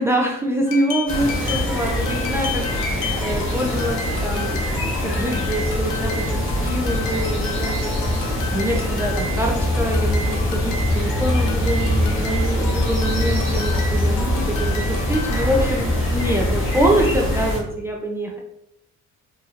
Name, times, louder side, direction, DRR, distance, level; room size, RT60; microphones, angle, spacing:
voice 1, 0.0-18.4, right 1 dB, 10° right, 0 dB, 0.5 m, -25 dB
sound 1, 0.7-15.7, left 4 dB, 85° left, 0.6 m, -33 dB
sound 2, 1.1-17.6, left 1 dB, 45° left, 1.4 m, -23 dB
4.1 x 2.8 x 2.5 m, 0.82 s
cardioid pair, 90°, 30 cm